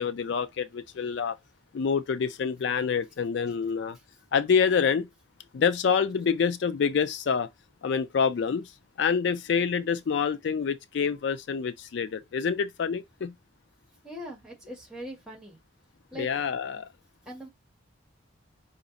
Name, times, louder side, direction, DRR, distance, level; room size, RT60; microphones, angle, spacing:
voice 1, 0.0-1.4 1.7-4.0 4.3-5.1 5.5-7.5 7.8-8.7 9.0-13.3 16.2-16.9, left 6 dB, 60° left, 0.3 m, -27 dB
voice 2, 14.0-15.6 16.1-16.3 17.3-17.5, equal, ahead, 1.7 m, -41 dB
4.9 x 2.5 x 3.9 m
head